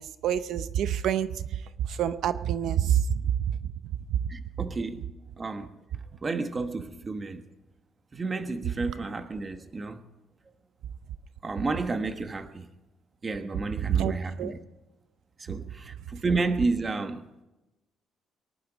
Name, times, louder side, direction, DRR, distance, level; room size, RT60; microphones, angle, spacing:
voice 1, 0.0-1.4 1.8-3.6 4.1-4.2 13.8-14.1 14.4-14.5, right 9 dB, 70° right, 0.7 m, -27 dB
voice 2, 4.3-5.0 5.4-5.7 6.2-7.5 8.1-10.0 11.4-12.7 13.2-14.6 15.4-17.3, right 3 dB, 25° right, 1.2 m, -31 dB
23.0 x 11.5 x 4.1 m
cardioid pair, 145°, 0 cm